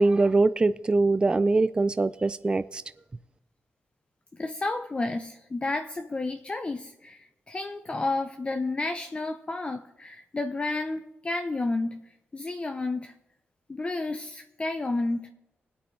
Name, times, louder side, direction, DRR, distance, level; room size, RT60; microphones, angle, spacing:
voice 1, 0.0-2.8, right 3 dB, 25° right, 14 dB, 0.4 m, -22 dB
voice 2, 4.3-13.1 13.7-15.3, left 2 dB, 25° left, 5 dB, 0.7 m, -31 dB
20.0 x 8.6 x 3.3 m, 0.91 s
cardioid pair, 95°, 4 cm